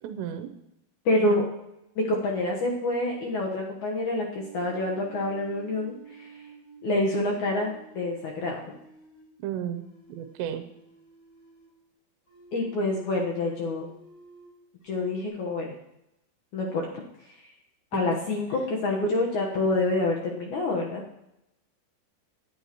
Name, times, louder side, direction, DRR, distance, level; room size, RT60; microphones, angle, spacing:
voice 1, 0.0-0.5 9.4-9.8 10.1-10.6 17.9-18.2, right 10 dB, 85° right, 7 dB, 3.0 m, -33 dB
voice 2, 1.1-1.4 2.0-6.3 6.8-8.6 12.5-13.9 14.8-15.7 16.5-16.8 17.9-21.0, left 2 dB, 65° left, -1 dB, 2.1 m, -27 dB
sound 1, 4.3-9.3 9.7-11.8 12.3-14.5 14.8-15.3, right 4 dB, 15° left, 4.1 m, -51 dB
17.5 x 11.0 x 3.0 m, 0.85 s
omnidirectional pair, 4.9 m